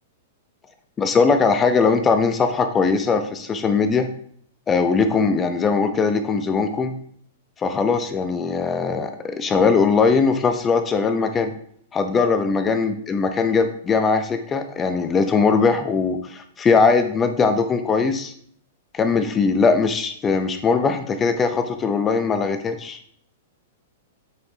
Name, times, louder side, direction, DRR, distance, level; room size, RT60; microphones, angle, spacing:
voice 1, 1.0-4.1 4.7-7.0 7.6-11.5 11.9-18.3 18.9-23.0, left 4 dB, 20° left, 8 dB, 0.5 m, -20 dB
8.2 x 4.6 x 2.7 m, 0.63 s
hypercardioid pair, 130°, 0 cm